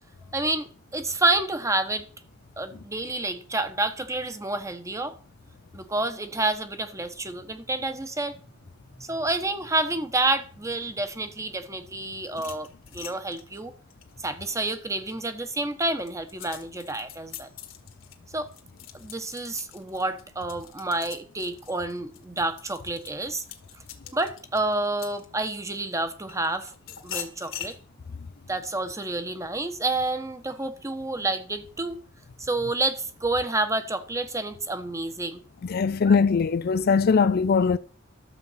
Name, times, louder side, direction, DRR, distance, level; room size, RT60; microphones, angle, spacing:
voice 1, 0.3-2.1 2.6-5.1 5.7-8.4 9.0-12.7 12.9-13.7 14.2-17.5 18.3-18.5 18.9-23.4 24.1-26.7 27.0-27.7 28.5-32.0 32.4-35.4 36.1-36.2, right 2 dB, 15° right, 1.1 m, -29 dB
sound 1, 12.3-15.1 15.6-25.7 26.3-27.8, left 10 dB, 65° left, 1.8 m, -43 dB
voice 2, 35.6-37.8, left 5 dB, 50° left, 0.4 m, -21 dB
12.5 x 7.4 x 5.7 m
head